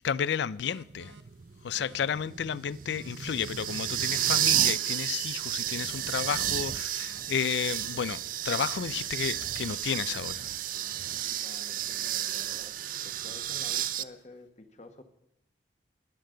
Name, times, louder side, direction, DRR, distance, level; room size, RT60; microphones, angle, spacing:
voice 1, 0.0-1.1 1.6-10.5, left 7 dB, 70° left, 0.4 m, -32 dB
sound 1, 0.6-1.2 1.7-2.0 2.9-4.2 4.7-5.0 5.9-7.2 7.7-8.0 8.9-10.2 10.7-11.0 11.9-12.5, right 4 dB, 75° right, 0.9 m, -54 dB
sound 2, 0.9-14.0, right 12 dB, 45° right, 0.4 m, -32 dB
voice 2, 11.0-15.0, left 2 dB, 40° left, 1.3 m, -51 dB
20.0 x 7.4 x 3.8 m
head